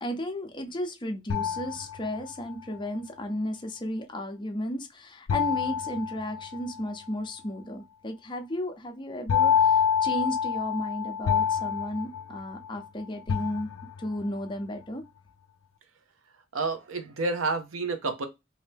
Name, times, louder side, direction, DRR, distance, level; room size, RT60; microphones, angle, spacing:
voice 1, 0.0-13.7 14.0-15.0, left 1 dB, 25° left, 0.6 m, -34 dB
sound 1, 1.3-2.5 5.3-6.9 9.3-12.9 13.3-14.2, left 7 dB, 80° left, 0.4 m, -27 dB
voice 2, 16.5-18.3, right 3 dB, 80° right, 0.7 m, -29 dB
2.9 x 2.7 x 3.4 m
head